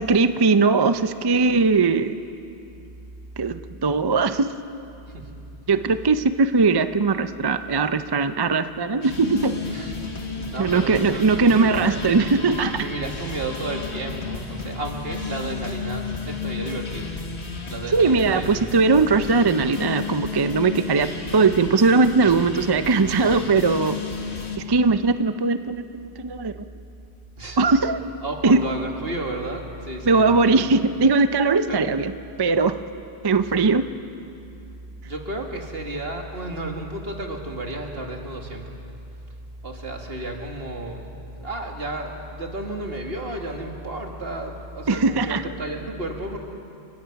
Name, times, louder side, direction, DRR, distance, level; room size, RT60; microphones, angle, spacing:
voice 1, 0.0-2.2 3.4-4.5 5.7-9.5 10.6-12.9 17.9-24.0 24.7-26.6 27.6-28.0 28.4-28.6 30.0-32.1 32.4-32.8 33.2-33.8 44.9-45.4, right 4 dB, 35° right, 10 dB, 0.4 m, -20 dB
sound 1, 9.0-24.6, left 4 dB, 70° left, 1.9 m, -33 dB
voice 2, 10.5-12.0 12.8-17.1 17.7-18.9 22.2-22.3 27.4-27.6 28.2-30.7 31.7-31.8 35.0-38.7 39.6-46.4, right 2 dB, 55° right, 2 dB, 2.2 m, -32 dB
30.0 x 16.5 x 5.9 m, 2.6 s
omnidirectional pair, 1.2 m